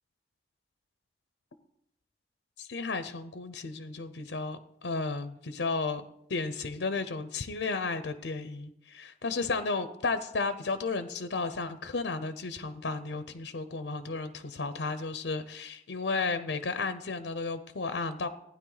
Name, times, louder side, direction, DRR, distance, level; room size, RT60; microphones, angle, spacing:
voice 1, 2.6-6.0 6.3-18.3, left 3 dB, 80° left, 10 dB, 0.7 m, -33 dB
15.0 x 9.8 x 4.0 m, 0.76 s
head